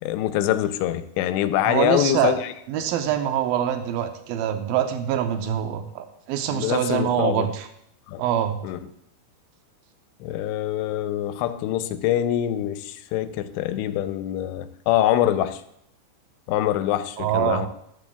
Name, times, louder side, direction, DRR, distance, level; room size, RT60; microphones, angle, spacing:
voice 1, 0.0-2.5 6.5-7.5 8.1-8.2 8.6-8.8 10.2-15.6 16.5-17.7, left 12 dB, 90° left, 2.8 m, -24 dB
voice 2, 1.7-2.4 2.7-7.7 8.2-8.6 17.2-17.7, right 10 dB, 85° right, 2.1 m, -24 dB
13.5 x 11.5 x 2.3 m
omnidirectional pair, 4.9 m